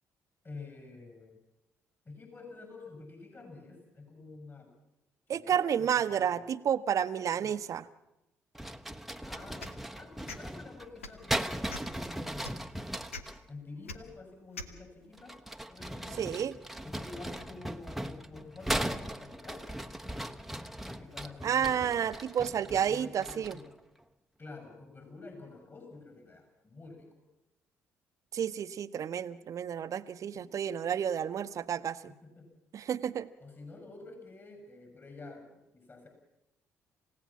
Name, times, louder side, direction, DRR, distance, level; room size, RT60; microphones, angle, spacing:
voice 1, 0.4-1.4 2.0-4.7 5.3-6.5 7.4-7.6 9.2-12.5 13.5-15.4 15.7-16.3 16.8-20.4 20.8-22.2 22.6-23.7 24.4-27.2 30.3-30.5 32.2-32.5 33.4-35.5 35.7-36.1, left 3 dB, 35° left, 5 dB, 6.5 m, -49 dB
voice 2, 5.3-7.9 16.2-16.5 21.4-23.6 28.3-32.1 32.7-33.3, right 8 dB, 50° right, 12 dB, 1.0 m, -31 dB
sound 1, 8.5-13.4 15.1-23.7, right 1 dB, ahead, 1.1 m, -38 dB
sound 2, 9.6-9.8 10.3-10.4 11.0-11.2 11.7-12.0 12.4-12.6 13.1-13.2 13.9-14.0 14.5-14.7, left 3 dB, 90° left, 1.0 m, -41 dB
27.5 x 16.5 x 7.3 m, 0.90 s
hypercardioid pair, 45°, 7 cm